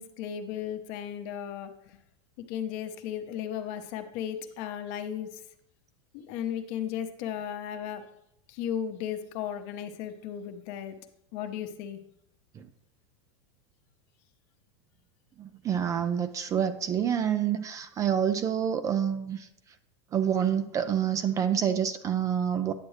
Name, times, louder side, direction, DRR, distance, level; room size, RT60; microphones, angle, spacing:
voice 1, 0.0-2.0 2.4-5.4 6.1-8.0 8.5-10.9 11.3-12.0, left 9 dB, 50° left, 7 dB, 0.9 m, -35 dB
voice 2, 15.4-19.5 20.1-22.7, right 8 dB, 20° right, 10 dB, 0.4 m, -27 dB
9.7 x 7.6 x 3.2 m, 0.78 s
supercardioid pair, 145°, 15 cm